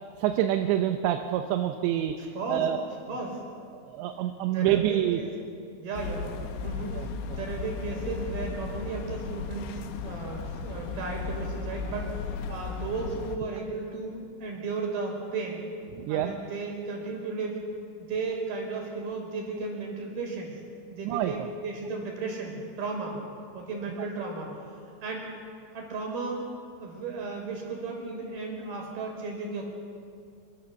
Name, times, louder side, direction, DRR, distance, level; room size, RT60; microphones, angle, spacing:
voice 1, 0.2-2.8 3.9-5.2 6.9-7.4 15.9-16.3 21.0-21.5, right 12 dB, 85° right, 6 dB, 3.1 m, -27 dB
voice 2, 2.3-2.7 3.1-3.4 4.5-5.3 5.8-6.3 6.6-15.6 16.1-17.6 18.0-20.6 20.9-23.2 23.5-24.6 25.0-25.3 25.7-26.5 26.8-29.6, right 4 dB, 60° right, 0 dB, 6.8 m, -35 dB
sound 1, 5.9-13.4, left 5 dB, 90° left, 3.6 m, -35 dB
27.0 x 24.0 x 7.1 m, 2.3 s
omnidirectional pair, 5.1 m